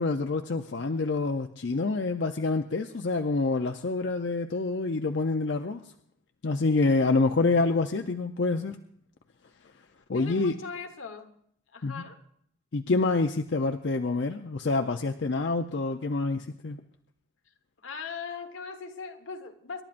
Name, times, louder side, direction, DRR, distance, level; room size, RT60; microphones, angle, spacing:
voice 1, 0.0-5.8 6.4-8.8 10.1-10.5 11.8-12.0 12.7-16.8, left 3 dB, 60° left, 6 dB, 0.6 m, -27 dB
voice 2, 10.1-11.4 11.7-12.2 17.8-19.8, left 5 dB, 85° left, 6 dB, 1.3 m, -39 dB
27.0 x 12.0 x 2.5 m, 0.68 s
head